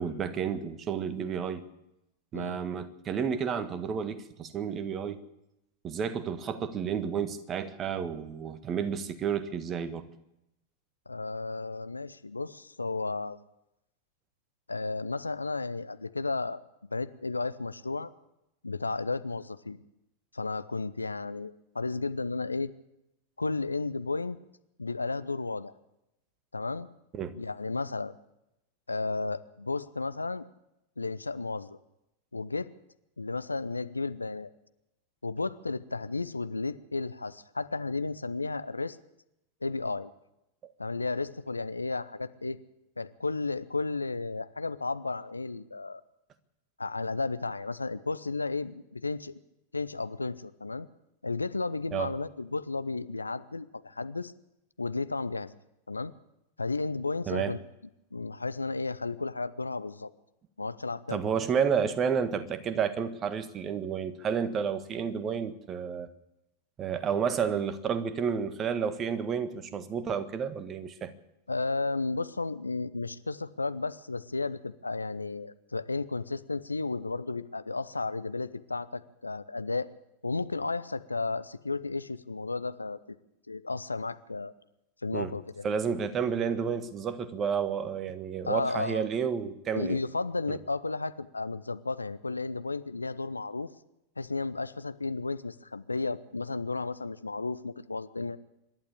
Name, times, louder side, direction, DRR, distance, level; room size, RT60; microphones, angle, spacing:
voice 1, 0.0-1.6 2.3-5.2 5.8-10.0 27.1-27.4 51.9-52.1 57.3-57.6 61.1-66.1 66.8-71.1 85.1-85.3 85.6-90.0 90.5-90.6, right 7 dB, 25° right, 12 dB, 1.5 m, -31 dB
voice 2, 11.1-13.4 14.7-16.6 16.9-18.1 18.6-19.8 20.3-22.7 23.4-24.4 24.8-25.7 26.5-26.9 27.3-28.2 28.9-30.4 31.0-31.8 32.3-32.7 33.2-34.5 35.2-39.0 39.6-40.1 40.8-42.6 43.0-46.0 46.8-49.4 49.7-50.9 51.2-54.3 54.8-55.6 55.9-56.1 56.6-57.6 58.1-60.1 60.6-61.2 71.5-79.9 80.2-83.0 83.5-84.5 85.0-85.7 88.5-89.0 89.7-93.7 94.2-98.4, left 3 dB, 80° left, 14 dB, 0.7 m, -33 dB
26.0 x 11.5 x 8.5 m, 0.88 s
figure-of-eight pair, 90°, 0 cm